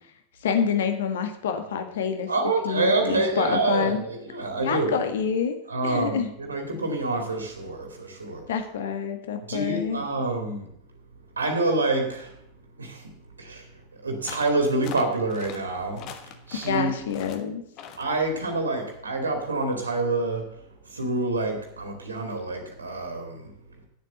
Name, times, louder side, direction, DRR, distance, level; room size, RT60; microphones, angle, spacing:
voice 1, 0.4-2.3 2.6-4.0 4.6-5.6 5.8-6.3 8.5-10.0 16.7-17.6, left 7 dB, 60° left, 7 dB, 1.6 m, -27 dB
voice 2, 2.3-5.0 5.7-8.4 9.5-10.7 11.4-12.4 12.8-13.1 13.4-13.7 14.0-16.9 18.0-20.5 20.9-23.5, right 2 dB, 75° right, 4 dB, 2.3 m, -27 dB
sound 1, 14.3-14.5 14.8-15.6 16.0-16.8 17.1-17.4 17.8-18.1, left 8 dB, 40° left, 1.3 m, -41 dB
9.2 x 7.6 x 8.0 m, 0.73 s
figure-of-eight pair, 90°, 0 cm